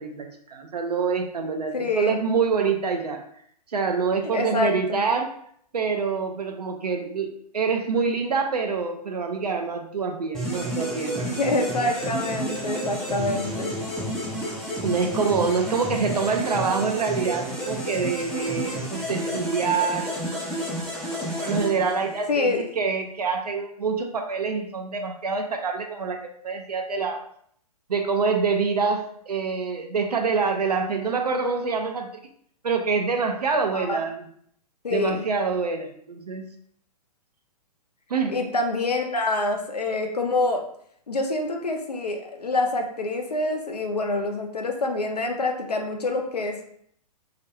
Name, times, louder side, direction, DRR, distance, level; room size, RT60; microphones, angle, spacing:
voice 1, 0.0-3.2 3.7-5.3 5.7-11.3 14.8-20.1 20.5-20.7 21.4-26.2 26.4-27.2 27.9-32.1 32.6-34.3 34.9-36.5 38.1-38.4, right 5 dB, 80° right, 4 dB, 0.4 m, -26 dB
voice 2, 1.7-2.2 4.3-5.0 11.4-13.7 22.3-22.6 33.7-34.0 34.8-35.3 38.3-40.6 41.1-46.6, left 2 dB, 85° left, 3 dB, 0.5 m, -26 dB
sound 1, 10.3-22.4, right 1 dB, 5° left, 0.4 m, -30 dB
2.4 x 2.2 x 2.8 m, 0.66 s
figure-of-eight pair, 115°, 20 cm